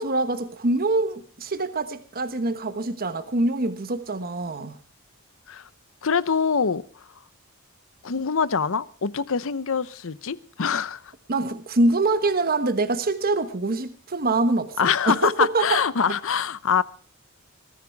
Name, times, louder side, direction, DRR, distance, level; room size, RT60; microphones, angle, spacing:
voice 1, 0.0-4.8 11.3-15.8, right 2 dB, 45° right, 1.2 m, -24 dB
voice 2, 6.0-6.8 8.0-11.1 14.8-16.8, left 6 dB, 65° left, 0.8 m, -24 dB
21.0 x 13.5 x 4.7 m
head